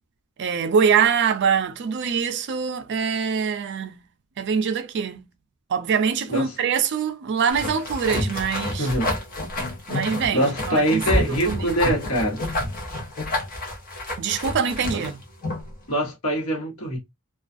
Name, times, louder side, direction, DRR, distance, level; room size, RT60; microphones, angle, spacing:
voice 1, 0.4-4.0 4.4-5.2 5.7-8.9 9.9-11.0 11.3-11.8 14.2-15.2, right 6 dB, 50° right, 0.4 m, -24 dB
sound 1, 7.5-15.7, left 1 dB, 40° left, 0.8 m, -29 dB
voice 2, 8.8-9.1 10.3-12.4 14.9-15.0 15.9-17.0, right 1 dB, 70° left, 1.2 m, -24 dB
2.3 x 2.3 x 2.5 m
head